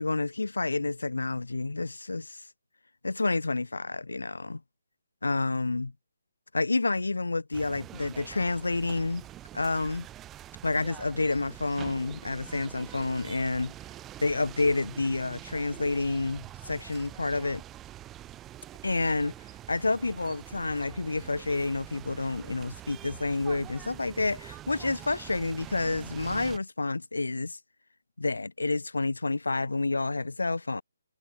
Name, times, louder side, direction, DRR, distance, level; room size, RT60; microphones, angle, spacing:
voice 1, 0.0-2.4 3.0-4.6 5.2-5.9 6.5-9.3 9.5-10.1 10.6-13.7 14.2-17.6 18.8-19.3 19.7-27.6 28.2-30.8, left 3 dB, 80° left, 3.4 m, -29 dB
sound 1, 7.5-26.6, right 13 dB, 15° right, 3.1 m, -45 dB
figure-of-eight pair, 145°, 0 cm